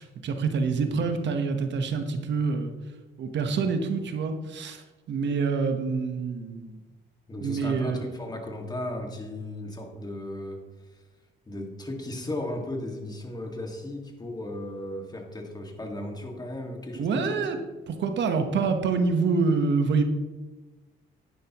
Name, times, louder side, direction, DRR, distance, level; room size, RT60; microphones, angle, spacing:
voice 1, 0.0-2.7 3.2-6.8 7.4-8.1 16.9-17.6 17.9-20.0, right 4 dB, 65° right, 7 dB, 1.2 m, -26 dB
voice 2, 7.3-10.6 11.5-17.6, left 1 dB, 20° left, 2 dB, 2.0 m, -35 dB
11.0 x 9.6 x 3.0 m, 1.2 s
cardioid pair, 90°, 20 cm